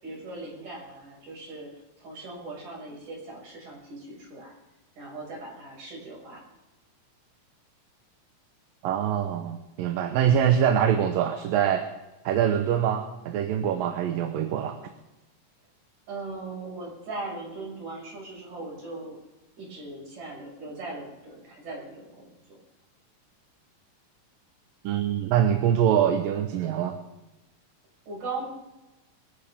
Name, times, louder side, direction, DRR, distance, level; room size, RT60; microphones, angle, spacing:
voice 1, 0.0-4.5 5.0-6.4 16.1-19.2 19.6-22.6 28.1-28.5, right 2 dB, 65° right, -3 dB, 7.7 m, -39 dB
voice 2, 8.8-11.8 12.3-14.8 24.8-27.0, right 9 dB, 80° right, 5 dB, 2.7 m, -24 dB
22.5 x 15.0 x 3.7 m, 1.0 s
omnidirectional pair, 4.0 m